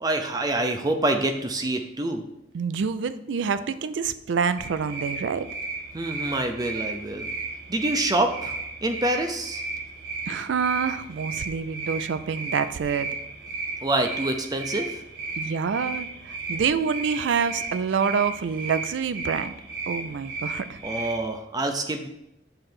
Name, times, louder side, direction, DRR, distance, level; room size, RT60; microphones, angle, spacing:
voice 1, 0.0-2.2 5.9-7.3 7.7-9.6 13.8-15.0 20.8-22.1, right 2 dB, 20° right, 5 dB, 0.5 m, -26 dB
voice 2, 2.5-5.5 10.3-13.1 15.4-19.5 19.9-20.8, right 6 dB, 85° right, 13 dB, 0.4 m, -27 dB
sound 1, 4.6-21.3, right 3 dB, 65° right, 1.7 m, -35 dB
6.8 x 3.2 x 6.0 m, 0.84 s
head